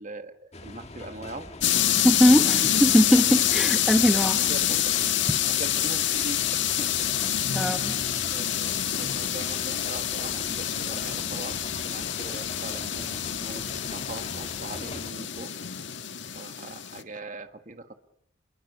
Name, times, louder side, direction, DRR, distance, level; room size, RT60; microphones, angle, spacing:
voice 1, 0.0-1.5 2.3-2.8 4.3-4.8 5.5-7.1 8.2-8.7 9.0-15.5 16.4-17.9, right 2 dB, 45° right, 8 dB, 1.6 m, -41 dB
sound 1, 0.5-15.1, left 2 dB, 35° left, 2.1 m, -42 dB
sound 2, 1.6-17.0, left 11 dB, 75° left, 1.7 m, -27 dB
voice 2, 2.0-4.4 7.5-7.9, equal, 5° right, 6 dB, 1.1 m, -20 dB
28.0 x 22.5 x 6.9 m, 0.71 s
head